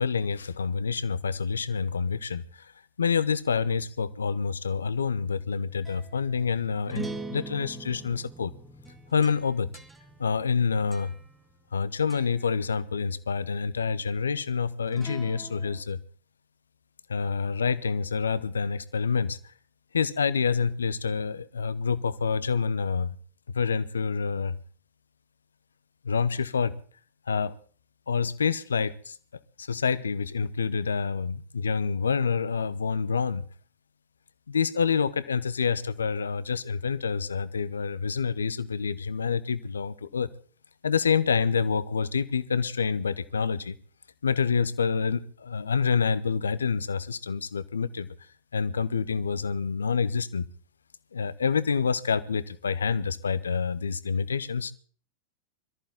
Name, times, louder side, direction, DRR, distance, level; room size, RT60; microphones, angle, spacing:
voice 1, 0.0-2.7 3.0-8.5 9.1-9.7 10.2-11.1 11.7-16.0 17.1-19.4 19.9-23.2 23.5-24.6 26.0-26.7 27.3-27.5 28.1-29.2 29.6-33.4 34.5-40.3 40.8-43.8 44.2-48.1 48.5-50.5 51.1-54.7, left 5 dB, 70° left, 17 dB, 0.9 m, -27 dB
sound 1, 5.4-11.8 12.1-12.5 14.9-15.8, right 2 dB, 5° right, 1.9 m, -43 dB
23.0 x 14.0 x 3.7 m, 0.43 s
figure-of-eight pair, 90°, 0 cm